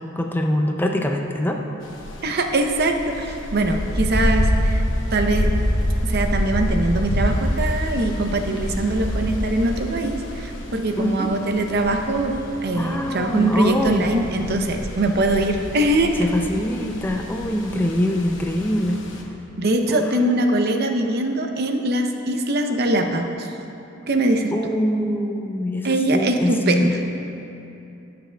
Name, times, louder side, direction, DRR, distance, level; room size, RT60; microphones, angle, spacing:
voice 1, 0.0-1.6 11.0-11.3 12.7-14.0 16.2-19.0 19.9-20.1 24.5-27.0, equal, 10° left, 2 dB, 0.4 m, -24 dB
sound 1, 1.8-19.2, equal, 65° left, 0.9 m, -27 dB
voice 2, 2.2-4.8 5.1-5.5 6.0-16.3 19.6-23.5 24.1-24.5 25.8-27.0, right 1 dB, 50° right, 4 dB, 0.6 m, -22 dB
16.0 x 6.8 x 2.3 m, 2.7 s
head